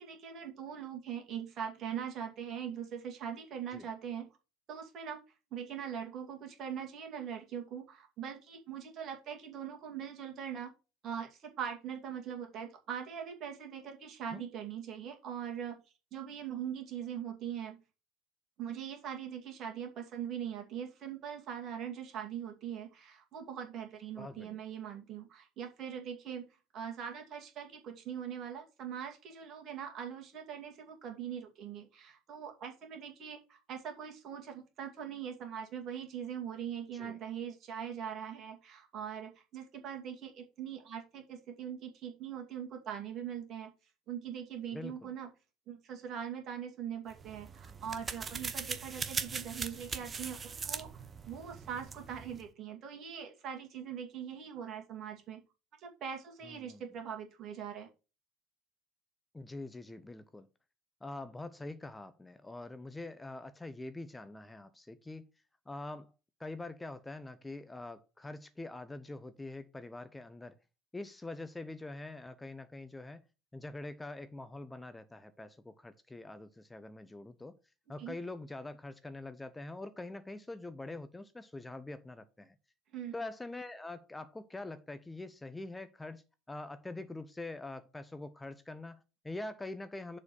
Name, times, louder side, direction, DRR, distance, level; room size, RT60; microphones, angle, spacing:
voice 1, 0.0-4.3 4.7-5.2 5.5-10.7 11.0-15.8 16.1-17.8 18.6-26.4 26.7-43.7 44.1-45.3 45.7-51.0 51.3-55.4 55.8-57.9 78.0-78.2 82.9-83.1, right 8 dB, 45° right, 2.3 m, -42 dB
voice 2, 24.2-24.6 36.9-37.2 44.7-45.1 56.4-56.8 59.3-60.5 61.0-65.3 65.7-66.1 66.4-70.6 70.9-73.2 73.5-77.5 77.9-82.5 83.1-90.2, left 2 dB, 10° left, 0.7 m, -44 dB
sound 1, 47.1-52.5, right 5 dB, 25° right, 0.9 m, -40 dB
7.0 x 4.2 x 6.3 m
figure-of-eight pair, 65°, 0 cm